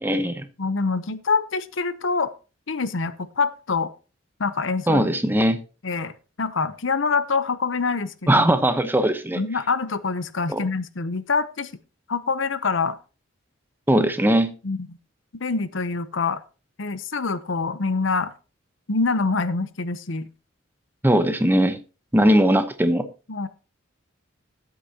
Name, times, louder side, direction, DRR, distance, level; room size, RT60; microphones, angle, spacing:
voice 1, 0.0-0.5 4.9-5.6 8.3-9.4 10.5-10.6 13.9-14.5 21.0-21.8 22.1-23.0, right 1 dB, 10° right, 9 dB, 0.9 m, -19 dB
voice 2, 0.6-2.3 2.7-3.9 4.4-5.1 5.8-6.1 6.4-8.4 9.4-11.7 12.1-13.0 14.6-15.0 15.4-16.4 16.8-18.3 18.9-20.3 23.3-23.5, left 4 dB, 70° left, 14 dB, 0.8 m, -25 dB
15.0 x 8.5 x 2.9 m, 0.32 s
head